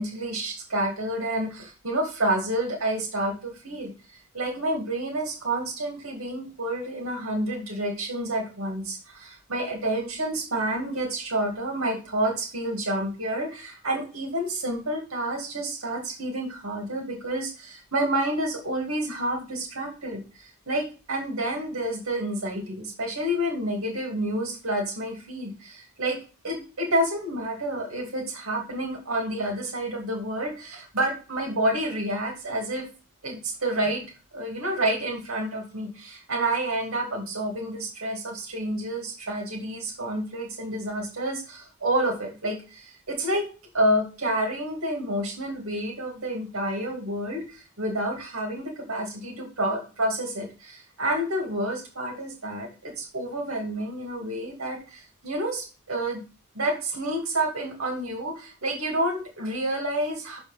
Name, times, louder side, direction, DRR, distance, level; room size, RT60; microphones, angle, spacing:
voice 1, 0.0-26.2 26.4-32.8 33.2-34.0 34.3-43.5 43.7-56.2 56.5-60.4, right 1 dB, 80° right, 1 dB, 2.8 m, -29 dB
6.5 x 5.1 x 5.3 m, 0.33 s
head